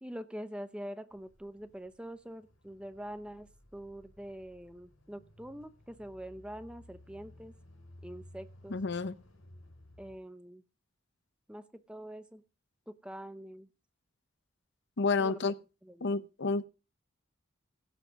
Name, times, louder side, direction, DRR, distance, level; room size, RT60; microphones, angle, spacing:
voice 1, 0.0-7.5 8.0-8.8 10.0-10.6 11.5-12.4 12.9-13.7 15.2-15.4 15.8-16.1, equal, 5° right, 0.8 m, -44 dB
sound 1, 1.1-10.2, left 1 dB, 75° left, 4.9 m, -57 dB
voice 2, 8.7-9.1 15.0-15.5 16.0-16.6, left 4 dB, 55° left, 0.7 m, -30 dB
16.0 x 5.8 x 5.2 m
head